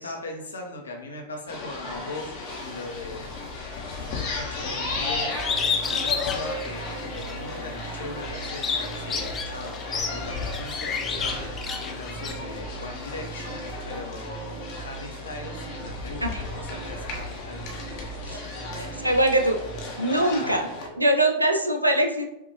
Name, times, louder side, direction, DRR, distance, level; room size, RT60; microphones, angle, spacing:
voice 1, 0.0-5.4 5.8-17.8 20.1-20.6, left 2 dB, 70° left, 1 dB, 0.9 m, -39 dB
sound 1, 1.5-20.9, left 3 dB, 45° left, 1.0 m, -35 dB
Bird, 5.4-7.4 7.8-12.3, left 6 dB, 20° left, 0.7 m, -30 dB
sound 2, 5.4-19.8, right 5 dB, 30° right, 0.8 m, -40 dB
voice 2, 18.8-19.6 20.0-20.7 21.0-22.2, right 1 dB, 85° right, 4 dB, 0.5 m, -22 dB
5.7 x 2.6 x 3.0 m, 0.89 s
figure-of-eight pair, 90°, 0 cm